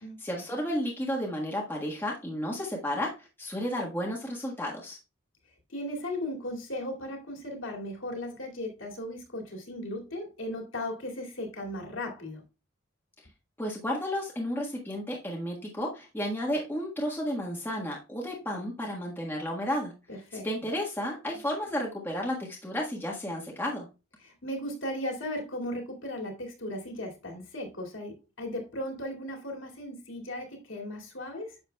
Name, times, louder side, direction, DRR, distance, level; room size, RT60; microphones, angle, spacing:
voice 1, 0.2-5.0 13.6-19.9 20.3-23.9, equal, 10° left, 1.4 m, -32 dB
voice 2, 5.7-12.4 20.1-20.5 24.2-31.6, left 1 dB, 70° left, 2.4 m, -36 dB
9.7 x 7.1 x 2.3 m
head